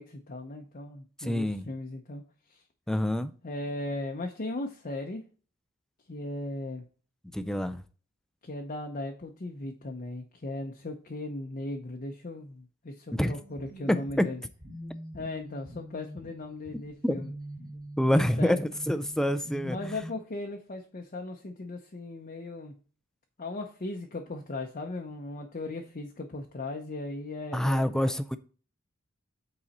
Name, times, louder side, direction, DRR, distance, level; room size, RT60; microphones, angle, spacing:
voice 1, 0.0-2.2 2.5-2.6 3.4-5.2 6.1-6.8 8.4-14.4 15.1-17.3 18.1-18.6 19.6-22.8 23.4-28.2, left 2 dB, 40° left, 0.7 m, -37 dB
voice 2, 1.2-1.6 2.9-3.3 7.3-7.8 13.1-13.3 13.9-14.3 17.0-17.2 18.0-19.8 27.5-28.4, equal, 5° left, 0.4 m, -26 dB
sound 1, 13.2-20.1, equal, 20° right, 2.3 m, -44 dB
8.7 x 4.0 x 4.1 m
head